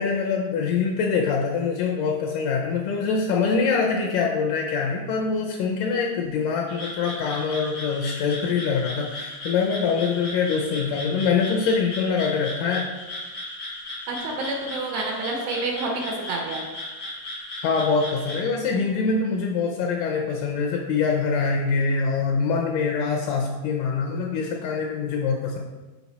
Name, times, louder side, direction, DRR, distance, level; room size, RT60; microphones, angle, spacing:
voice 1, 0.0-12.9 17.6-25.6, left 5 dB, 80° left, 0 dB, 2.1 m, -24 dB
Frog, 6.7-18.4, left 1 dB, 45° left, 1.0 m, -36 dB
voice 2, 14.1-15.9 16.2-16.6, right 3 dB, 70° right, 0 dB, 2.2 m, -29 dB
5.9 x 4.6 x 4.0 m, 1.2 s
omnidirectional pair, 4.0 m